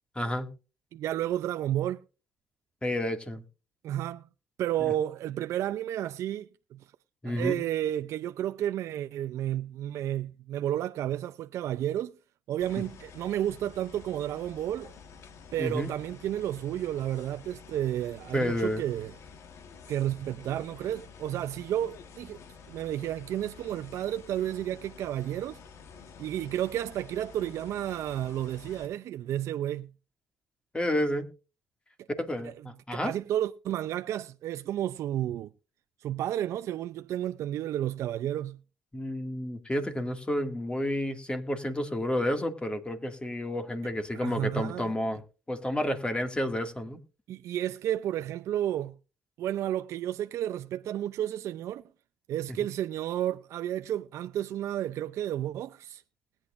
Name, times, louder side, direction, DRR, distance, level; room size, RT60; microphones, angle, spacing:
voice 1, 0.2-0.5 2.8-3.4 7.2-7.6 15.6-15.9 18.3-18.8 30.7-31.3 32.2-33.1 38.9-45.2 45.5-47.0, left 1 dB, 20° left, 2.2 m, -30 dB
voice 2, 0.9-2.0 3.8-4.3 4.6-6.8 7.2-12.1 12.5-14.9 15.5-19.1 19.9-22.4 22.7-25.6 26.2-29.9 32.4-32.5 32.9-35.5 36.0-38.6 44.1-44.9 47.3-48.9 49.4-51.8 52.3-56.0, right 12 dB, 70° right, 0.5 m, -32 dB
sound 1, 12.6-28.9, left 5 dB, 70° left, 1.5 m, -50 dB
20.0 x 8.8 x 2.6 m
supercardioid pair, 65°, 5 cm